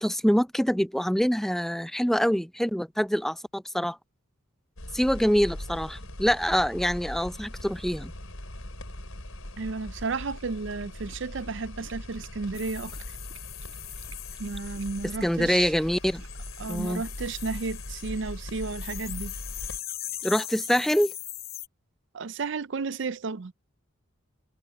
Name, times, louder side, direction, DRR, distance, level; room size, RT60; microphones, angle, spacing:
voice 1, 0.0-4.0 4.9-8.1 15.2-16.2 16.7-17.0 20.2-21.1, equal, ahead, 0.5 m, -25 dB
sound 1, 4.8-19.8, left 1 dB, 90° left, 5.0 m, -40 dB
voice 2, 9.6-13.0 14.4-15.7 16.6-19.3 22.1-23.5, right 4 dB, 60° right, 0.5 m, -33 dB
sound 2, 10.2-17.5, right 6 dB, 75° right, 7.9 m, -56 dB
sound 3, 12.5-15.1 16.1-21.7, left 14 dB, 50° left, 6.2 m, -40 dB
head